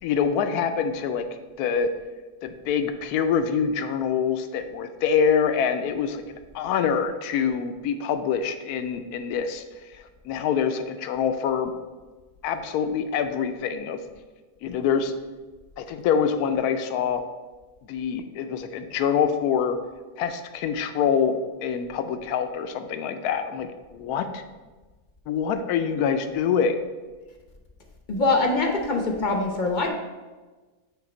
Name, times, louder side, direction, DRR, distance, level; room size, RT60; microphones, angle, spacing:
voice 1, 0.0-1.3 1.6-1.9 2.4-6.2 6.5-9.6 9.9-11.7 12.4-14.0 14.6-15.1 15.8-17.2 17.8-19.8 20.2-24.4 25.3-26.7, left 7 dB, 85° left, 8 dB, 1.1 m, -25 dB
voice 2, 28.1-29.9, left 3 dB, 45° left, 2 dB, 0.6 m, -23 dB
9.1 x 3.3 x 4.3 m, 1.3 s
omnidirectional pair, 1.6 m